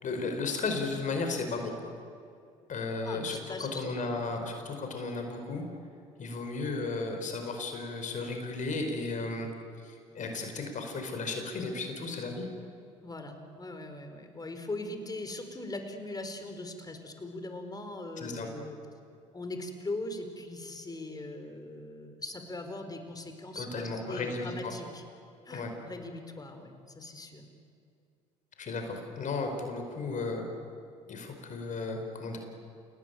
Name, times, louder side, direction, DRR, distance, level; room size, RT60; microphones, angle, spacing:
voice 1, 0.0-1.7 2.7-5.6 6.2-9.5 9.8-12.5 18.2-18.5 23.5-24.7 25.5-25.7 28.6-30.5 31.1-32.4, left 3 dB, 45° left, 4 dB, 5.0 m, -34 dB
voice 2, 3.0-4.5 13.0-18.8 19.3-25.0 25.4-27.4, left 2 dB, 20° left, 7 dB, 4.7 m, -40 dB
29.0 x 18.5 x 9.5 m, 2.5 s
supercardioid pair, 75°, 17 cm